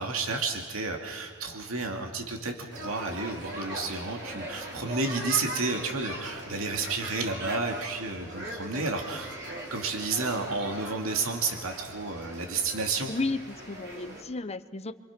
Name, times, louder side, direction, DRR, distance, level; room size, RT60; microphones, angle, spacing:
voice 1, 0.0-9.3 9.7-13.1, right 3 dB, 75° right, 3 dB, 2.5 m, -31 dB
sound 1, 2.7-14.2, right 1 dB, 55° right, 3.8 m, -40 dB
voice 2, 13.1-14.9, left 3 dB, 30° left, 12 dB, 0.9 m, -33 dB
27.5 x 25.5 x 6.1 m, 1.5 s
head